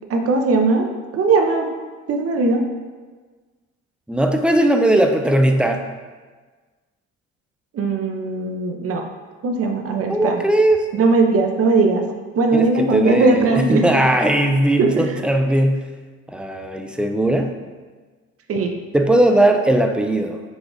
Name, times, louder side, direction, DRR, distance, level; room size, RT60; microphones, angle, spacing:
voice 1, 0.1-1.7 2.1-2.6 7.7-9.0 9.4-10.4 10.9-12.0 12.3-13.8 14.8-14.9 18.5-18.7, right 3 dB, 50° right, 3 dB, 0.7 m, -19 dB
voice 2, 4.1-5.9 10.1-10.9 12.5-15.9 16.3-17.5 18.9-20.4, right 1 dB, 5° right, 4 dB, 0.3 m, -18 dB
5.0 x 2.4 x 3.8 m, 1.4 s
cardioid pair, 90°, 30 cm